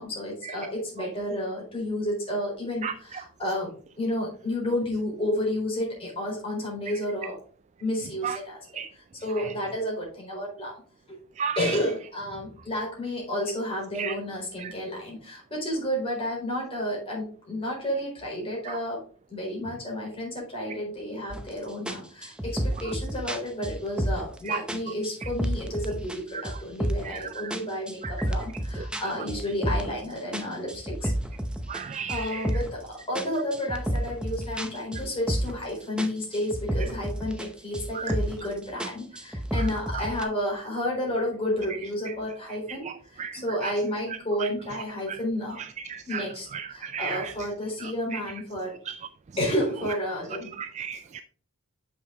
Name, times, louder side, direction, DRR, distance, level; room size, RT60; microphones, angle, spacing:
voice 1, 0.0-3.7 4.0-7.4 7.8-10.8 11.1-11.2 11.5-19.0 19.3-31.1 32.1-45.6 46.1-48.8 49.4-50.5, left 1 dB, 25° left, 4.1 m, -31 dB
sound 1, 21.3-21.5 21.9-24.4 24.7-26.2 26.4-27.2 27.5-30.0 30.3-32.8 33.1-35.7 36.0-37.5 37.7-38.5 38.8-40.2, right 1 dB, 5° right, 0.7 m, -30 dB
voice 2, 31.7-32.4 38.0-38.1 43.2-43.3 45.9-46.2 46.5-47.2 48.1-48.2 50.6-51.2, right 7 dB, 35° right, 0.3 m, -32 dB
7.0 x 6.2 x 3.9 m
head